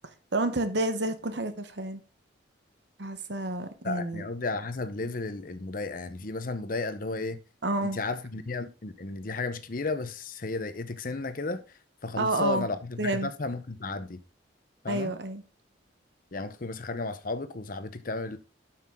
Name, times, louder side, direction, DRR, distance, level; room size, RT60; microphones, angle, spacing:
voice 1, 0.3-2.0 3.0-4.2 7.6-8.0 12.2-12.7 13.0-13.3 14.9-15.4, right 2 dB, 65° right, 1.1 m, -29 dB
voice 2, 3.8-7.4 7.8-11.6 12.0-14.2 14.8-15.1 16.3-18.4, left 3 dB, 50° left, 0.8 m, -33 dB
12.0 x 5.9 x 3.7 m
head